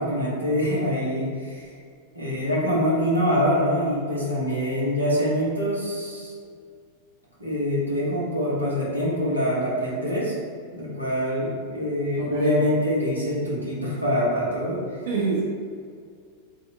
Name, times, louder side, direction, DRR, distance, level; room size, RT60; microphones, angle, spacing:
voice 1, 0.0-1.7 2.1-6.3 7.4-10.3 10.7-15.0, equal, 85° right, -7 dB, 1.3 m, -25 dB
voice 2, 12.2-12.7 15.0-15.4, right 4 dB, 55° right, -3 dB, 0.5 m, -26 dB
3.4 x 2.7 x 4.4 m, 2.2 s
figure-of-eight pair, 90°, 0 cm